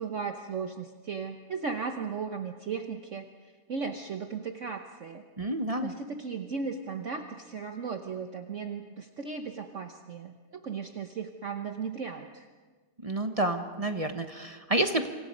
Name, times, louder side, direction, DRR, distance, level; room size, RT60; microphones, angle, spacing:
voice 1, 0.0-5.2 5.8-12.5, right 5 dB, 50° right, 6 dB, 1.2 m, -36 dB
voice 2, 5.4-5.9 13.0-15.1, right 1 dB, 25° right, 7 dB, 1.0 m, -29 dB
27.5 x 26.0 x 5.3 m, 1.4 s
omnidirectional pair, 1.8 m